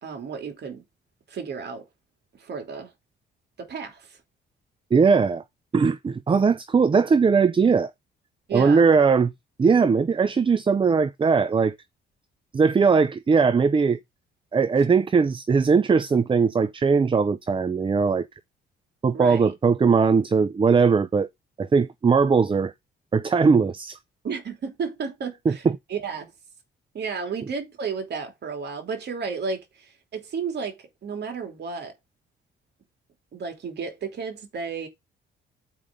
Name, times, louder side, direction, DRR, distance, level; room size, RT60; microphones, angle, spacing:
voice 1, 0.0-0.8 1.3-1.8 2.4-2.9 3.6-4.2 8.5-8.9 19.1-19.4 24.2-25.6 25.9-26.3 26.9-31.9 33.3-34.9, right 5 dB, 55° right, 3.0 m, -32 dB
voice 2, 4.9-5.4 5.7-7.9 8.5-9.3 9.6-11.8 12.5-14.0 14.5-18.2 19.0-21.3 21.6-22.7 23.1-24.0 25.5-25.6, right 5 dB, 25° right, 0.5 m, -20 dB
7.7 x 4.9 x 5.3 m
cardioid pair, 90°, 20 cm